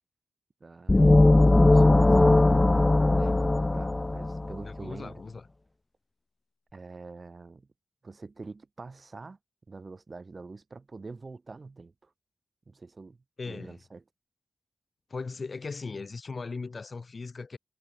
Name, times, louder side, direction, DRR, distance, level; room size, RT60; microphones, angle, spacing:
voice 1, 0.6-2.6 3.2-5.2 6.7-7.7 8.0-9.4 9.7-12.1 12.7-13.2 13.5-14.0, right 3 dB, 40° right, 4.8 m, -45 dB
sound 1, 0.9-4.7, left 2 dB, 25° left, 0.3 m, -19 dB
voice 2, 4.6-5.5 13.4-13.8 15.1-17.6, left 4 dB, 50° left, 1.9 m, -38 dB
wide cardioid pair, 90°, 0 cm